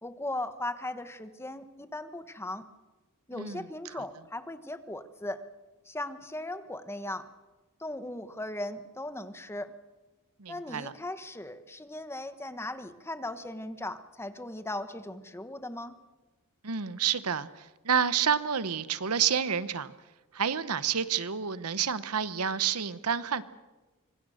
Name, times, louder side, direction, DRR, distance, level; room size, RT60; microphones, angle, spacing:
voice 1, 0.0-2.7 3.3-5.4 5.8-7.3 7.8-9.7 10.5-15.9, left 1 dB, 10° left, 10 dB, 1.3 m, -38 dB
voice 2, 10.4-10.9 16.6-19.9 20.3-23.4, right 7 dB, 80° right, 15 dB, 1.0 m, -29 dB
26.0 x 23.0 x 6.5 m, 1.2 s
head